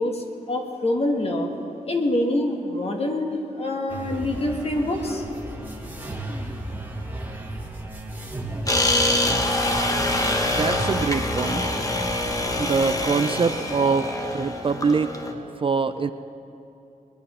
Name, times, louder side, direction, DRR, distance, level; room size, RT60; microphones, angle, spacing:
voice 1, 0.0-1.5 1.8-5.2, left 1 dB, 45° left, 2 dB, 1.7 m, -25 dB
sound 1, 3.9-12.9, right 1 dB, 10° right, 1.6 m, -34 dB
sound 2, 8.7-15.3, left 1 dB, 25° left, 1.2 m, -25 dB
voice 2, 10.5-11.6 12.6-15.1 15.6-16.1, right 5 dB, 40° right, 11 dB, 0.4 m, -24 dB
21.0 x 10.5 x 5.6 m, 2.8 s
wide cardioid pair, 105°, 15 cm